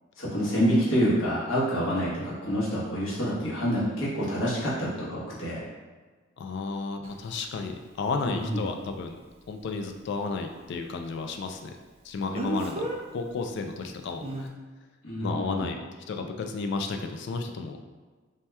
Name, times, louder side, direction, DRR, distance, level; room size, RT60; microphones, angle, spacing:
voice 1, 0.2-5.6 8.2-8.6 15.0-15.6, equal, 85° left, -7 dB, 1.0 m, -27 dB
voice 2, 6.4-9.2 9.5-11.7 12.0-14.5 15.2-17.8, left 4 dB, 60° left, 5 dB, 0.3 m, -33 dB
Speech, 7.0-7.1 12.3-13.0 14.2-14.5, right 2 dB, 30° right, 0.3 m, -31 dB
2.8 x 2.2 x 3.2 m, 1.4 s
head